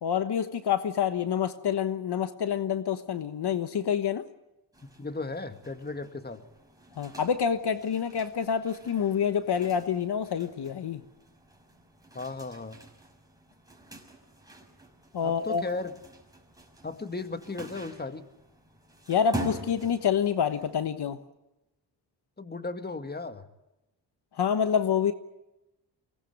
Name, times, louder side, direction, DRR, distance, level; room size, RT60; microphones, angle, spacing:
voice 1, 0.0-4.2 7.0-11.0 15.1-15.6 19.1-21.2 24.4-25.1, left 8 dB, 65° left, 10 dB, 1.3 m, -27 dB
sound 1, 4.7-20.8, right 1 dB, 10° right, 5.6 m, -45 dB
voice 2, 4.8-6.4 12.1-12.8 15.2-15.9 16.8-18.3 22.4-23.5, left 3 dB, 25° left, 9 dB, 1.9 m, -36 dB
23.5 x 19.0 x 9.7 m, 0.96 s
cardioid pair, 75°, 42 cm